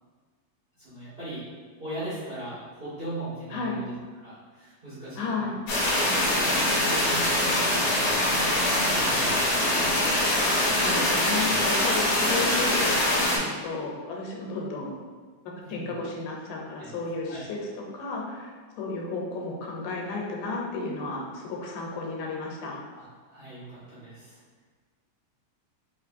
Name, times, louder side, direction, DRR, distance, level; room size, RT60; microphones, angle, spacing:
voice 1, 0.8-1.4 1.8-3.9 4.2-5.4 6.2-9.9 15.6-15.9 16.8-16.9 17.3-17.4 22.9-24.4, right 1 dB, 80° right, -13 dB, 0.5 m, -39 dB
voice 2, 5.2-5.6 10.8-15.0 15.7-22.8, left 3 dB, 90° left, -1 dB, 2.4 m, -33 dB
sound 1, 5.7-13.4, left 1 dB, 70° left, 2.1 m, -23 dB
5.2 x 2.9 x 2.5 m, 1.5 s
omnidirectional pair, 3.8 m